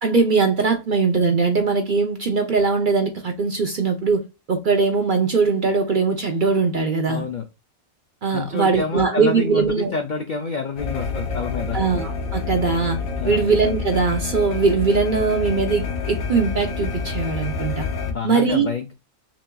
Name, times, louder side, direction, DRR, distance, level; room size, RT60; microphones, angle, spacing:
voice 1, 0.0-4.2 4.5-7.2 8.2-9.9 11.7-13.0 13.2-17.9 18.2-18.7, right 4 dB, 50° right, 0.6 m, -20 dB
voice 2, 7.1-7.4 8.3-11.8 13.2-13.4 18.1-18.9, left 4 dB, 70° left, 0.4 m, -28 dB
sound 1, 10.8-18.1, left 5 dB, 85° left, 1.2 m, -28 dB
5.9 x 2.4 x 2.2 m
omnidirectional pair, 1.4 m